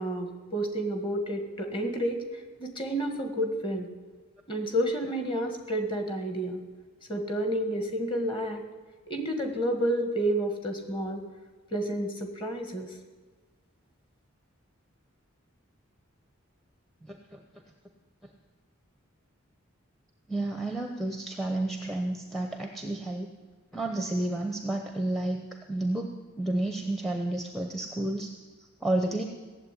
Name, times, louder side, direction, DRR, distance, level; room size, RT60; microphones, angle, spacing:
voice 1, 0.0-3.9 4.5-6.6 7.1-8.6 9.1-11.2 11.7-12.9, right 1 dB, 25° left, 5 dB, 1.8 m, -30 dB
voice 2, 20.3-23.3 23.7-28.3 28.8-29.2, right 1 dB, ahead, 4 dB, 0.8 m, -31 dB
17.0 x 7.6 x 9.9 m, 1.4 s
head